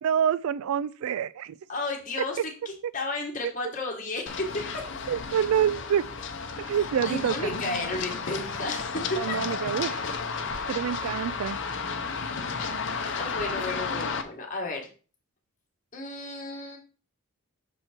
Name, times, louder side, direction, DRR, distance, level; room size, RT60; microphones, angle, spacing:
voice 1, 0.0-1.5 2.2-2.4 5.1-6.0 6.7-7.5 9.2-10.0 10.7-11.6, right 8 dB, 80° right, 0.3 m, -27 dB
voice 2, 1.7-4.6 5.0-5.1 7.0-9.0 9.3-9.4 13.2-14.9 15.9-16.8, left 2 dB, 35° left, 1.5 m, -33 dB
Run, 4.3-14.2, left 5 dB, 55° left, 0.8 m, -33 dB
6.3 x 4.3 x 4.4 m
head